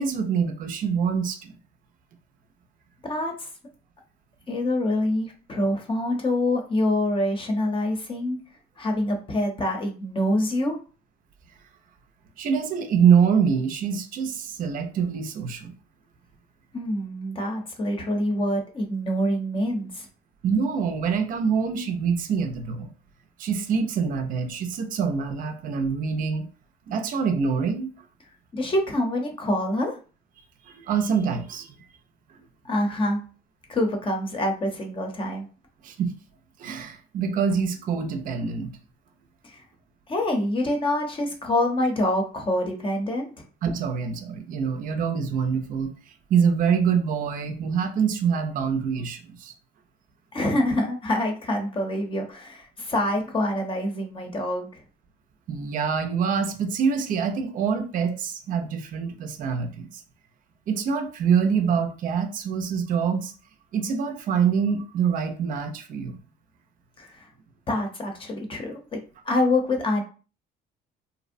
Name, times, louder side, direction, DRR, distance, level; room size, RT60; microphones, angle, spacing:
voice 1, 0.0-1.5 12.4-15.7 20.4-22.9 23.4-26.5 26.9-27.9 30.7-31.8 35.8-36.1 36.6-38.8 43.6-45.9 46.3-49.5 55.5-60.0 60.7-63.3 63.7-66.2, right 6 dB, 55° right, 6 dB, 0.5 m, -25 dB
voice 2, 3.0-3.5 4.5-8.4 8.8-10.8 16.7-20.1 28.5-30.0 32.6-33.2 33.7-35.5 39.4-39.6 40.1-43.4 50.3-54.8 67.0-67.3 67.7-69.0 69.2-70.0, left 1 dB, 30° left, 3 dB, 0.7 m, -26 dB
2.6 x 2.0 x 2.5 m, 0.36 s
cardioid pair, 110°, 17 cm